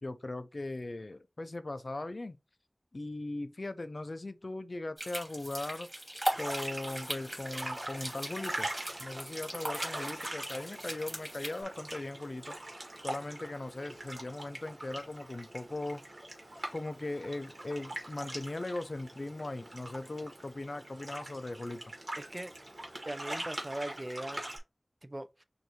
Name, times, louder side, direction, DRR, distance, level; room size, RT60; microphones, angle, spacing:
voice 1, 0.0-2.4 2.9-5.9 6.4-8.7 9.0-12.6 13.0-16.0 16.7-21.8, left 2 dB, 60° left, 0.5 m, -39 dB
sound 1, 5.0-11.6, right 1 dB, 15° right, 2.4 m, -39 dB
sound 2, 6.3-24.6, right 1 dB, 65° right, 1.6 m, -43 dB
voice 2, 22.2-22.5 23.1-24.4 25.0-25.4, right 1 dB, 30° right, 0.5 m, -40 dB
6.3 x 2.6 x 2.9 m
wide cardioid pair, 55°, 0 cm